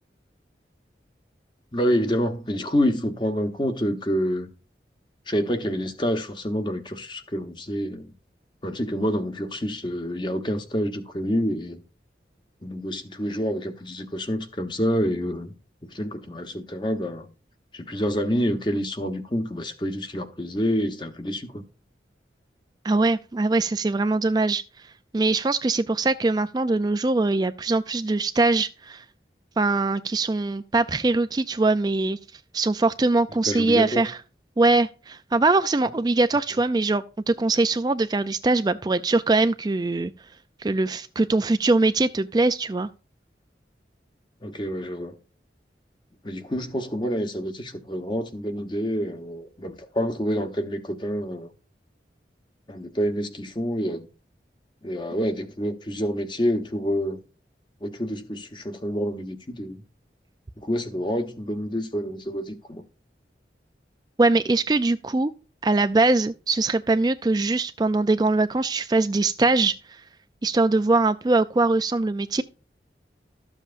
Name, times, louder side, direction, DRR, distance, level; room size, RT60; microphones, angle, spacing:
voice 1, 1.7-4.5 5.3-8.1 8.6-11.8 12.6-15.5 15.9-17.3 17.7-21.6 33.5-34.1 44.4-45.1 46.2-51.5 52.7-54.1 54.8-57.2 57.8-59.8 60.6-62.8, equal, 25° left, 1.1 m, -27 dB
voice 2, 22.8-24.6 25.1-29.0 29.6-32.2 32.5-34.2 34.6-40.1 40.6-42.9 64.2-65.3 65.6-69.8 70.4-72.4, right 3 dB, 25° right, 0.4 m, -22 dB
13.0 x 7.3 x 2.5 m
head